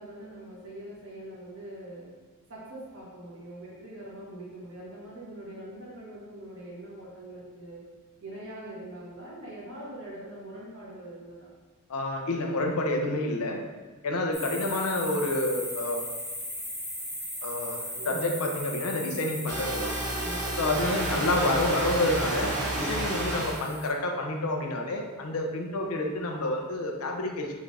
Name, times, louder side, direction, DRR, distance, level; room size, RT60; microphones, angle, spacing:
voice 1, 0.0-2.1 2.5-7.8 8.2-11.5 14.3-14.6 17.9-18.3 20.2-21.3 23.2-23.7 25.7-26.4, right 1 dB, 60° right, -6 dB, 1.4 m, -43 dB
voice 2, 11.9-13.6 14.0-16.0 17.4-20.0 20.6-27.5, left 2 dB, 75° left, 2 dB, 0.6 m, -29 dB
sound 1, 14.3-23.9, left 1 dB, 5° left, 1.4 m, -38 dB
sound 2, 19.5-23.6, right 1 dB, 80° right, 0.9 m, -30 dB
3.7 x 3.5 x 3.3 m, 1.3 s
head